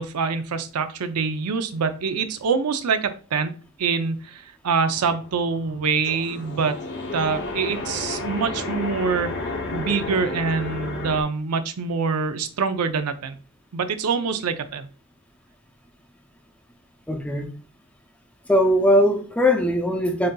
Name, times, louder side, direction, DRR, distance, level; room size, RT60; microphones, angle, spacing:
voice 1, 0.0-3.5 3.8-6.8 7.1-13.4 13.7-14.9, right 5 dB, 80° right, 0.5 m, -25 dB
sound 1, 4.9-11.2, left 2 dB, 50° left, 0.7 m, -32 dB
voice 2, 17.1-17.5 18.5-20.3, equal, 5° left, 0.5 m, -20 dB
7.4 x 2.6 x 2.2 m
head